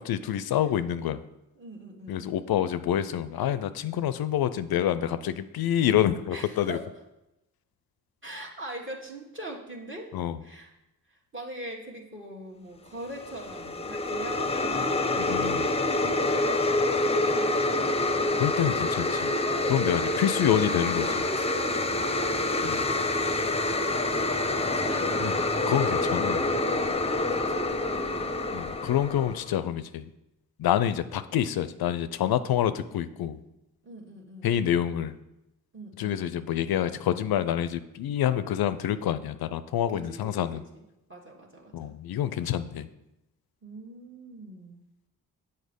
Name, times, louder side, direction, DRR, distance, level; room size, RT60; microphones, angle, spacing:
voice 1, 0.1-1.2 2.1-6.8 10.1-10.4 15.2-15.7 18.4-19.3 19.7-21.1 22.5-22.8 25.2-26.4 28.5-30.1 30.6-33.4 34.4-35.2 36.0-40.6 41.7-42.9, left 10 dB, 65° left, 13 dB, 0.5 m, -27 dB
voice 2, 1.6-2.4 6.3-6.8 8.2-10.1 10.4-10.7 11.1-18.5 19.4-22.7 24.0-28.3 33.8-34.5 35.7-36.2 39.9-40.8 41.1-41.9 43.6-44.8, right 1 dB, 30° right, -1 dB, 1.4 m, -42 dB
sound 1, 13.1-29.5, left 2 dB, 15° left, 0.6 m, -27 dB
6.5 x 4.2 x 5.2 m, 0.91 s
supercardioid pair, 40°, 40 cm